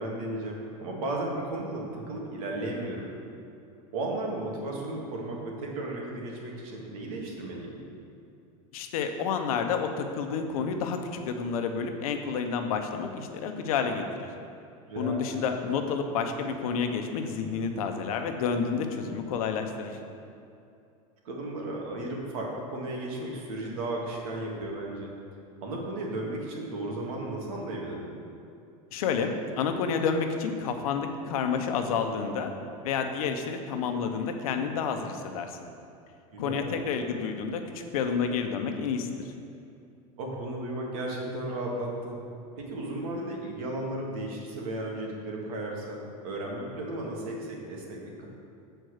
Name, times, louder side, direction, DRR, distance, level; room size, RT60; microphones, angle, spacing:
voice 1, 0.0-3.1 3.9-7.8 14.9-15.4 21.2-25.1 25.6-28.1 36.3-36.9 40.2-42.2 42.6-48.3, right 1 dB, 75° right, -1 dB, 2.0 m, -34 dB
voice 2, 8.7-14.3 15.0-20.0 28.9-32.5 32.8-35.6 36.4-39.1, left 6 dB, 80° left, 5 dB, 0.9 m, -30 dB
7.8 x 4.5 x 6.5 m, 2.6 s
supercardioid pair, 130°, 18 cm